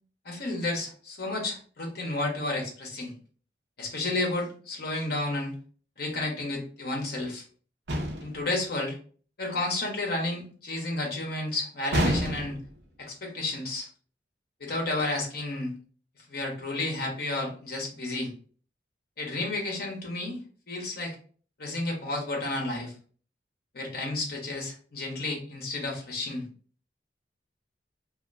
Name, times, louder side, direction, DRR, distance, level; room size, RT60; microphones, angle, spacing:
voice 1, 0.2-3.1 3.8-5.5 6.0-7.4 8.2-8.9 9.4-12.6 13.0-13.9 14.6-15.7 16.3-18.3 19.2-20.4 20.7-21.2 21.6-22.9 23.7-26.4, left 2 dB, 60° left, 0 dB, 0.9 m, -31 dB
sound 1, 7.9-8.4 11.9-12.7, equal, 65° right, 0.6 m, -27 dB
2.8 x 2.4 x 2.5 m, 0.42 s
head